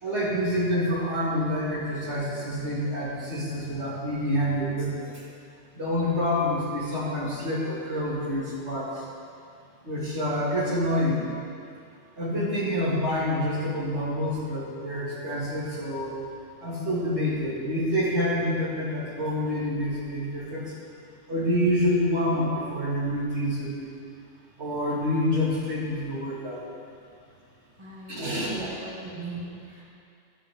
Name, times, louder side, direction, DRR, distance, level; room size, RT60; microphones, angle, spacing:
voice 1, 0.0-5.1 5.7-9.0 9.8-11.3 12.2-16.1 16.6-20.7 21.3-23.9 24.6-26.6 28.1-28.6, left 1 dB, 65° right, -7 dB, 2.7 m, -27 dB
voice 2, 27.8-29.8, right 2 dB, 25° right, -6 dB, 2.1 m, -39 dB
13.0 x 11.0 x 3.7 m, 2.4 s
omnidirectional pair, 1.2 m